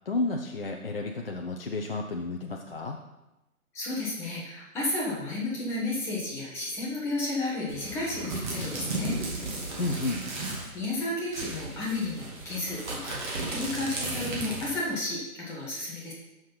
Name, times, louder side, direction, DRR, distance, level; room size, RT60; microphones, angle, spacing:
voice 1, 0.1-3.0 9.8-10.2, left 3 dB, 40° left, 2 dB, 0.6 m, -31 dB
voice 2, 3.7-9.2 10.7-16.1, left 2 dB, 5° left, -6 dB, 1.1 m, -32 dB
sound 1, 7.7-10.7 11.0-11.1 11.3-14.8, right 2 dB, 35° right, 2.3 m, -35 dB
6.4 x 6.3 x 5.5 m, 0.98 s
figure-of-eight pair, 140°, 43 cm